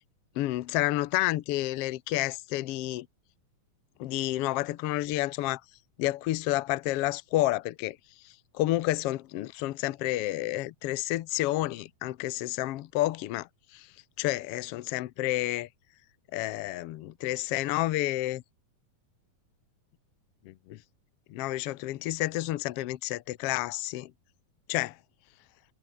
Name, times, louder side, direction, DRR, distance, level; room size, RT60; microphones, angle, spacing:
voice 1, 0.4-3.1 4.0-5.6 6.0-8.0 8.5-13.5 13.7-13.9 14.2-15.7 16.3-18.4 20.5-20.8 21.3-24.1 24.7-24.9, left 16 dB, 80° left, 1.3 m, -30 dB
omnidirectional pair, 3.7 m